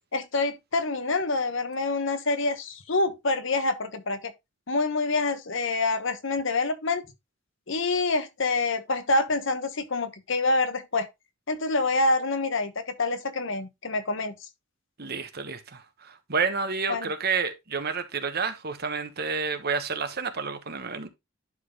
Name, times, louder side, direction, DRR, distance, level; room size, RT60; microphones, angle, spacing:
voice 1, 0.1-4.3 4.7-7.1 7.7-11.1 11.5-14.3 16.9-17.1, left 3 dB, 65° left, 1.1 m, -26 dB
voice 2, 15.0-21.1, right 5 dB, 50° right, 1.3 m, -30 dB
11.0 x 3.9 x 3.8 m
head